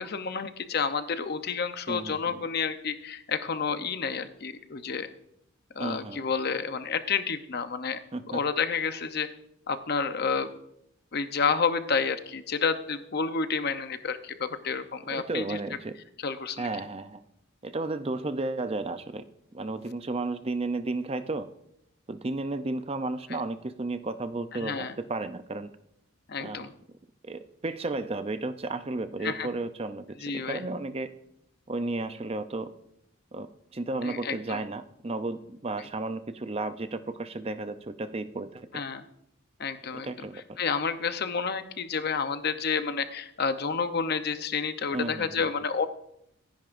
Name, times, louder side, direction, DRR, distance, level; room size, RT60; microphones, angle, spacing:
voice 1, 0.0-5.1 5.7-8.0 8.2-9.3 9.7-10.5 11.1-15.6 16.2-16.7 24.5-24.9 26.3-26.7 29.2-29.5 30.2-30.6 34.0-34.6 38.7-39.0 39.6-45.9, left 5 dB, 50° left, 10 dB, 0.7 m, -30 dB
voice 2, 1.9-2.4 5.8-6.2 8.1-8.4 15.1-16.0 16.6-17.2 17.6-19.3 19.5-21.5 22.1-25.7 26.4-26.7 27.2-31.1 31.7-32.7 33.3-38.7 39.9-40.4 44.9-45.5, right 2 dB, 30° right, 11 dB, 0.5 m, -33 dB
25.0 x 10.5 x 2.6 m, 0.77 s
head